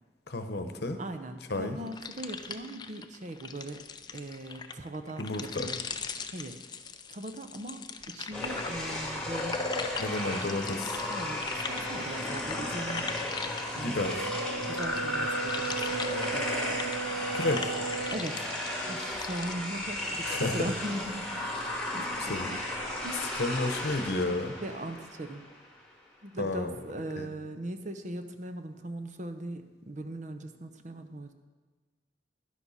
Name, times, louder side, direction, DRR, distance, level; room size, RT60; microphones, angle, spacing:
voice 1, 0.3-1.0 1.5-1.8 5.2-5.7 10.0-11.0 13.8-14.3 17.3-17.8 20.2-20.6 22.0-22.6 23.4-24.5 26.4-26.7 27.2-27.3, left 2 dB, 65° left, 7 dB, 0.9 m, -32 dB
voice 2, 1.0-3.8 4.1-5.8 6.3-6.6 7.1-9.6 11.1-13.1 13.5-14.0 14.6-17.0 18.1-18.5 18.9-21.5 21.9-22.6 23.0-23.4 24.6-25.4 26.2-31.3, right 1 dB, 45° right, 8 dB, 0.7 m, -40 dB
sound 1, 1.9-14.1 14.5-19.5, left 5 dB, 25° left, 0.5 m, -41 dB
sound 2, 8.3-25.6, left 1 dB, 5° left, 2.0 m, -34 dB
Brass instrument, 14.0-18.3, right 5 dB, 85° right, 0.4 m, -36 dB
11.5 x 10.5 x 4.2 m, 1.4 s
head